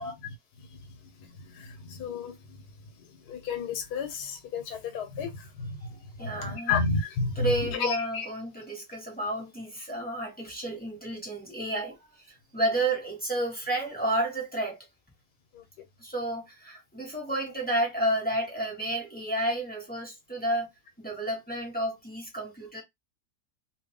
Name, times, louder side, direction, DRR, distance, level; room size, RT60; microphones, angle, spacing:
voice 1, 0.0-2.6 3.0-8.3 15.5-15.6, left 4 dB, 90° left, 1.4 m, -33 dB
voice 2, 6.2-6.7 7.4-12.0 12.5-14.8 16.0-20.7 21.0-22.8, right 1 dB, 5° left, 1.2 m, -31 dB
2.7 x 2.5 x 3.6 m
omnidirectional pair, 1.7 m